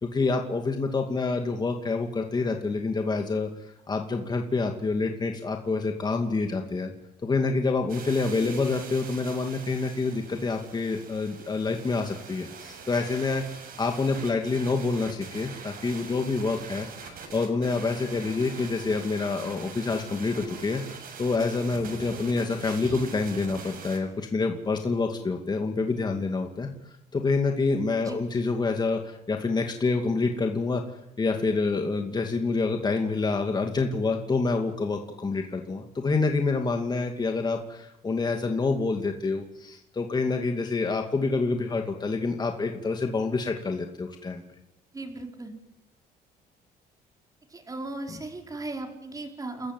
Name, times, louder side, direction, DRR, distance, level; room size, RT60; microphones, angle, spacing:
voice 1, 0.0-3.5 3.9-6.9 7.2-20.8 21.2-26.7 27.1-30.8 31.2-44.4, left 3 dB, 25° left, 3 dB, 2.4 m, -27 dB
sound 1, 7.9-24.0, right 5 dB, 60° right, 7.0 m, -43 dB
voice 2, 44.9-45.5 47.5-49.7, right 2 dB, 20° right, 3 dB, 5.0 m, -37 dB
30.0 x 14.5 x 9.4 m, 0.93 s
cardioid pair, 110°, 17 cm